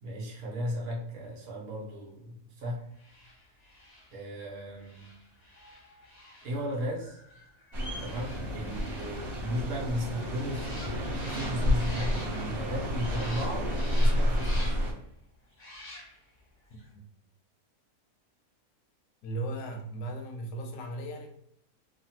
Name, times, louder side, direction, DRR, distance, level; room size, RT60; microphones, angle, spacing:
voice 1, 0.0-2.8 4.1-5.1 6.4-7.2 8.0-13.7 14.0-14.8, equal, 75° right, -2 dB, 1.3 m, -35 dB
sound 1, 2.9-12.7 13.0-15.0 15.5-16.4 16.7-16.9, left 1 dB, 40° left, 0.7 m, -49 dB
sound 2, 7.7-14.9, equal, 45° right, 1.2 m, -30 dB
voice 2, 19.2-21.3, right 2 dB, 80° left, 3 dB, 1.0 m, -36 dB
3.2 x 2.1 x 2.8 m, 0.73 s
omnidirectional pair, 1.5 m